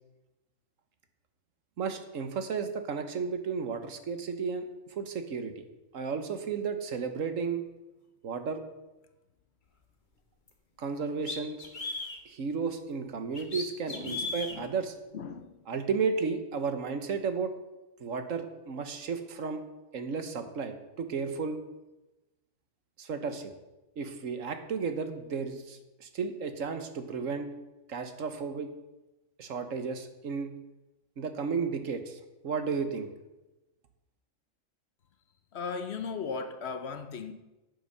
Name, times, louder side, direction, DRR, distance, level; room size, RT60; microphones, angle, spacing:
voice 1, 1.8-4.7 5.0-5.7 5.9-7.6 8.2-8.6 10.8-11.6 12.2-14.9 15.7-17.5 18.0-19.6 19.9-21.6 23.0-23.5 24.0-27.5 27.9-28.7 29.4-30.5 31.2-33.1, right 5 dB, 75° right, 1.5 m, -33 dB
sound 1, 10.5-10.6 11.2-12.2 13.3-14.5, left 3 dB, 35° left, 1.5 m, -36 dB
voice 2, 13.9-14.6 15.1-15.5 35.5-37.3, left 5 dB, 55° left, 1.0 m, -37 dB
9.0 x 8.6 x 6.8 m
omnidirectional pair, 1.4 m